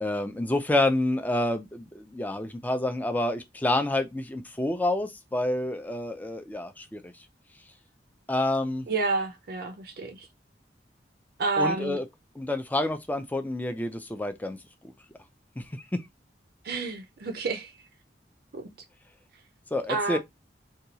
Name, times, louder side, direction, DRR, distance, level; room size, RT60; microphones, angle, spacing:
voice 1, 0.0-7.1 8.3-8.9 11.6-12.0 12.4-14.6 15.6-16.0 19.7-20.2, left 1 dB, 10° left, 0.4 m, -28 dB
voice 2, 8.9-10.3 11.4-12.0 16.6-17.7 18.5-18.7 19.9-20.2, right 3 dB, 60° right, 0.5 m, -29 dB
2.8 x 2.3 x 3.9 m
head